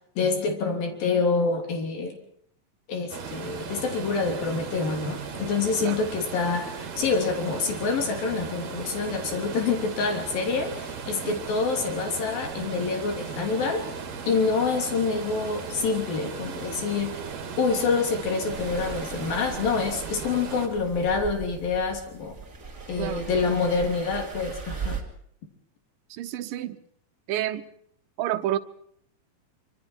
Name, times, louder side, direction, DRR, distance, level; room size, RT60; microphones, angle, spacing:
voice 1, 0.2-2.2 2.9-13.8 14.3-17.2 17.6-22.4 22.9-25.0, left 4 dB, 85° left, 5.0 m, -27 dB
sound 1, 3.1-20.7, right 6 dB, 55° right, 3.4 m, -37 dB
sound 2, 18.5-25.0, right 6 dB, 25° right, 2.6 m, -38 dB
voice 2, 23.0-23.4 26.1-26.8 27.3-27.6 28.2-28.6, right 13 dB, 80° right, 2.7 m, -29 dB
26.0 x 25.0 x 4.6 m
omnidirectional pair, 4.0 m